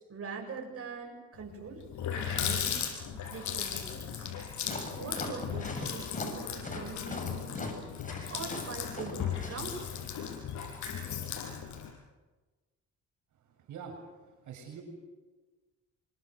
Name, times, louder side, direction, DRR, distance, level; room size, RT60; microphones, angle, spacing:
voice 1, 0.1-1.9 2.3-4.3 5.0-7.8 8.3-9.8, right 4 dB, 50° right, 2 dB, 7.7 m, -43 dB
Water tap faucet, 1.4-1.5 1.8-11.9, left 8 dB, 75° left, 7.3 m, -36 dB
sound 1, 4.6-9.6, left 2 dB, 25° left, 7.9 m, -39 dB
voice 2, 13.3-14.8, right 6 dB, 75° right, 3 dB, 6.9 m, -46 dB
28.0 x 25.5 x 7.8 m, 1.2 s
cardioid pair, 90°, 30 cm